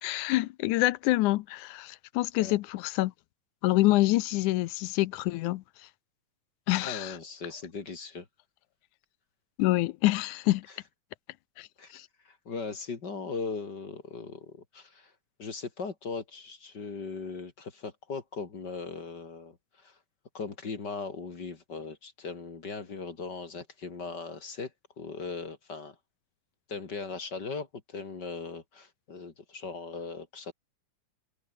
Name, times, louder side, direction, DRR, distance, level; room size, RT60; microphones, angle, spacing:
voice 1, 0.0-3.1 3.6-5.6 6.7-7.2 9.6-10.7 11.6-11.7 11.9-12.1, left 18 dB, 80° left, 2.1 m, -26 dB
voice 2, 6.8-8.3 11.8-11.9 12.2-15.1 15.4-19.6 19.8-19.9 20.3-24.7 25.0-25.9 26.7-30.5, left 4 dB, 35° left, 2.5 m, -39 dB
omnidirectional pair, 3.6 m